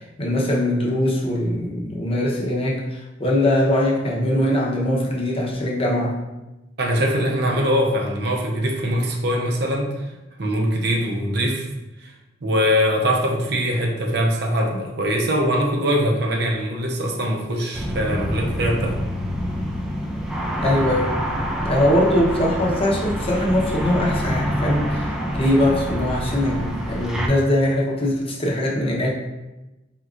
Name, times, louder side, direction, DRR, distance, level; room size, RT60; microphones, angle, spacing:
voice 1, 0.0-6.2 20.6-21.1 21.6-29.1, left 1 dB, 30° left, -3 dB, 0.8 m, -21 dB
voice 2, 6.8-9.9 10.4-11.7 12.0-12.1 12.4-19.0, equal, 60° right, 1 dB, 0.7 m, -22 dB
sound 1, 17.7-27.3, equal, 5° right, 0.4 m, -26 dB
4.4 x 3.7 x 2.4 m, 1.0 s
head